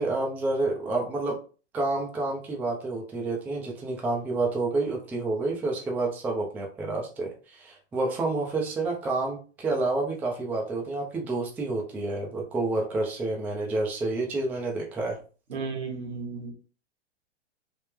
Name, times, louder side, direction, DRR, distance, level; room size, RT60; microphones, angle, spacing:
voice 1, 0.0-1.4 1.7-15.2, right 2 dB, 5° right, 0 dB, 0.3 m, -29 dB
voice 2, 15.5-16.5, right 4 dB, 70° right, 3 dB, 1.2 m, -34 dB
3.4 x 2.1 x 3.2 m, 0.37 s
hypercardioid pair, 110°, 34 cm